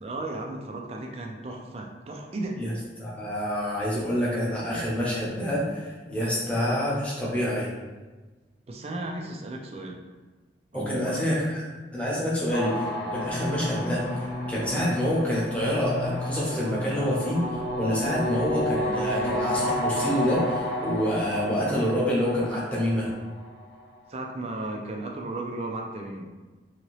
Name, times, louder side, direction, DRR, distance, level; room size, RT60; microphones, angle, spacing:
voice 1, 0.0-2.6 8.7-10.0 10.7-11.2 14.7-15.0 24.1-26.3, right 2 dB, 35° right, 2 dB, 0.4 m, -35 dB
voice 2, 3.0-7.7 10.7-14.0 14.5-17.4 17.7-23.1, equal, 5° left, -7 dB, 0.7 m, -27 dB
sound 1, 12.5-23.6, left 1 dB, 60° left, 0.6 m, -31 dB
2.8 x 2.8 x 3.0 m, 1.3 s
head